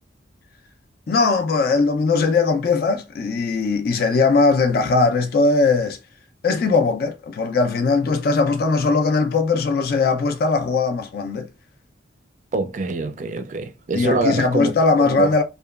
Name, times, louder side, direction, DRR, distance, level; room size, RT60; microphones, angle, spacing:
voice 1, 1.1-6.0 6.4-11.5 13.9-15.4, left 4 dB, 50° left, 0.3 m, -19 dB
voice 2, 12.5-14.7 15.0-15.3, right 3 dB, 40° right, 0.3 m, -24 dB
2.8 x 2.2 x 2.3 m
head